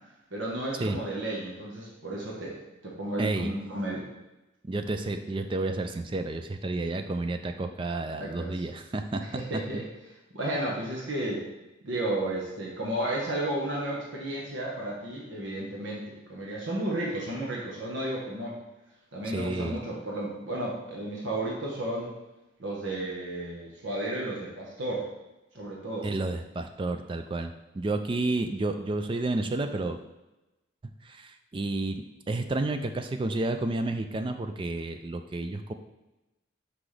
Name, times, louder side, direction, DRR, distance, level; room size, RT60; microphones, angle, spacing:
voice 1, 0.3-4.1 8.2-8.6 9.2-9.9 10.3-11.5 11.8-18.6 19.1-22.1 22.6-25.1 25.5-26.1, right 1 dB, 70° right, -3 dB, 1.2 m, -33 dB
voice 2, 3.2-3.5 4.6-9.2 9.7-9.8 19.3-19.8 26.0-30.0 31.0-35.7, right 2 dB, 25° right, 7 dB, 0.3 m, -31 dB
5.9 x 5.0 x 3.3 m, 1.0 s
head